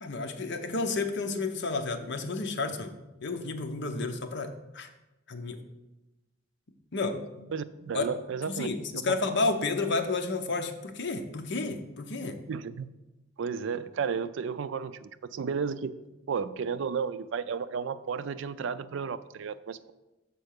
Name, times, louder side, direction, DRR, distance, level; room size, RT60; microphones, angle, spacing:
voice 1, 0.0-2.9 3.2-4.9 5.3-5.6 6.9-7.2 7.9-8.1 8.5-12.4, left 3 dB, 60° left, 6 dB, 0.8 m, -31 dB
voice 2, 7.5-9.2 12.4-12.9 13.4-15.9 16.3-19.9, right 6 dB, 70° right, 14 dB, 0.4 m, -33 dB
7.0 x 4.4 x 6.5 m, 1.0 s
head